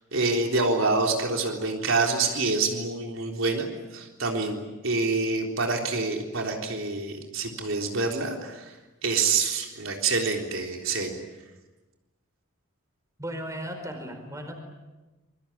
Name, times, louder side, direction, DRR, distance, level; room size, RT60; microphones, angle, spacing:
voice 1, 0.1-8.7 9.0-11.1, right 3 dB, 70° right, 2 dB, 3.8 m, -27 dB
voice 2, 13.2-14.6, equal, 15° right, 5 dB, 4.7 m, -36 dB
27.5 x 23.0 x 8.7 m, 1.1 s
head